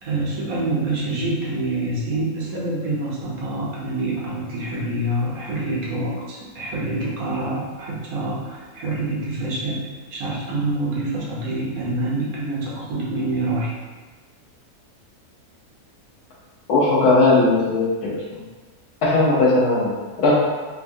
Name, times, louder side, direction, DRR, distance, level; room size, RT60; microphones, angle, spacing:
voice 1, 0.0-9.8 10.1-13.7, right 2 dB, 75° right, -5 dB, 1.2 m, -26 dB
voice 2, 16.7-18.4 19.0-20.3, left 2 dB, 80° left, -5 dB, 1.3 m, -18 dB
3.5 x 2.2 x 2.5 m, 1.3 s
omnidirectional pair, 1.6 m